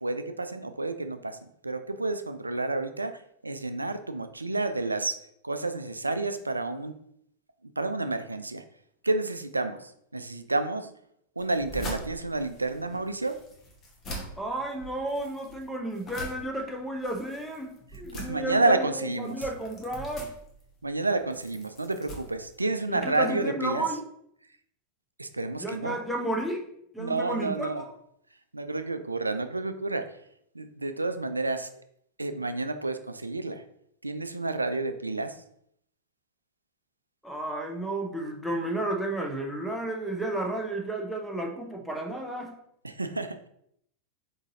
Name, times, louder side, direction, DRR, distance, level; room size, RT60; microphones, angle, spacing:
voice 1, 0.0-5.2 5.4-7.0 7.6-8.6 9.0-10.9 11.4-13.4 18.1-19.4 20.8-23.8 25.2-26.0 27.0-27.8 28.5-30.2 30.5-31.8 32.2-33.6 34.0-35.4 42.8-43.5, right 2 dB, 80° right, 10 dB, 0.3 m, -30 dB
sound 1, 11.4-23.1, right 1 dB, 30° left, 1.0 m, -43 dB
voice 2, 14.4-20.3 22.9-24.0 25.6-26.6 26.9-27.9 37.2-42.6, right 1 dB, ahead, 1 dB, 0.7 m, -32 dB
4.0 x 3.7 x 2.7 m, 0.71 s
figure-of-eight pair, 90°, 0 cm